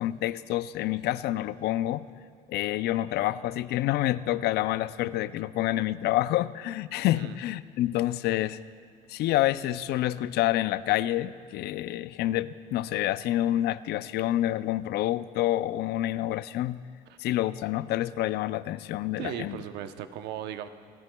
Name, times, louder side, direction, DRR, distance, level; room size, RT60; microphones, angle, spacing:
voice 1, 0.0-2.1 2.5-8.6 9.1-16.8 17.2-19.6, left 14 dB, 75° left, 15 dB, 0.4 m, -28 dB
voice 2, 19.2-20.7, right 10 dB, 85° right, 9 dB, 0.7 m, -37 dB
28.0 x 15.5 x 2.3 m, 2.1 s
cardioid pair, 110°, 17 cm